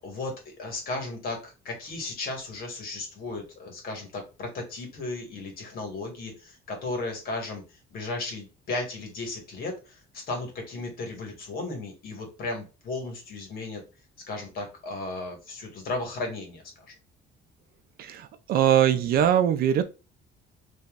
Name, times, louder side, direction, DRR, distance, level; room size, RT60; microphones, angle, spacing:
voice 1, 0.0-7.6 7.9-13.8 14.3-16.9, left 2 dB, 50° left, 2.0 m, -35 dB
voice 2, 18.0-19.8, right 10 dB, 50° right, 0.6 m, -22 dB
5.5 x 3.2 x 2.5 m
cardioid pair, 175°, 19 cm